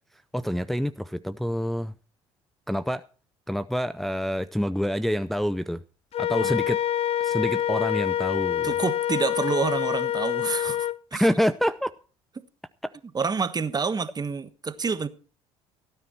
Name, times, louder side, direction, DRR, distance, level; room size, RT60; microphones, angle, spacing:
voice 1, 0.3-1.9 2.7-3.0 3.5-5.8 6.2-6.8 7.2-8.7 11.1-11.9 12.8-12.9, equal, ahead, 0.6 m, -27 dB
Wind instrument woodwind instrument, 6.1-11.0, left 11 dB, 50° left, 0.7 m, -26 dB
voice 2, 8.6-11.3 13.1-15.1, right 5 dB, 30° right, 1.3 m, -28 dB
17.0 x 9.6 x 4.3 m
hypercardioid pair, 65°, 13 cm